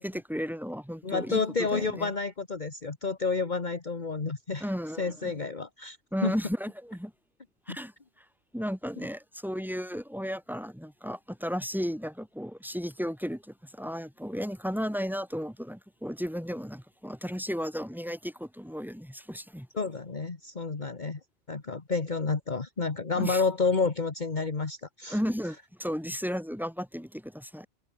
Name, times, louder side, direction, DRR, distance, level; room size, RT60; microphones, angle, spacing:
voice 1, 0.0-2.1 4.6-5.3 6.1-7.1 7.7-7.9 8.5-19.7 23.1-23.4 25.1-27.7, equal, ahead, 7.8 m, -34 dB
voice 2, 1.0-4.7 5.0-6.0 6.2-6.3 7.7-7.8 19.7-21.2 21.5-25.2, left 4 dB, 40° left, 1.8 m, -30 dB
omnidirectional pair, 1.2 m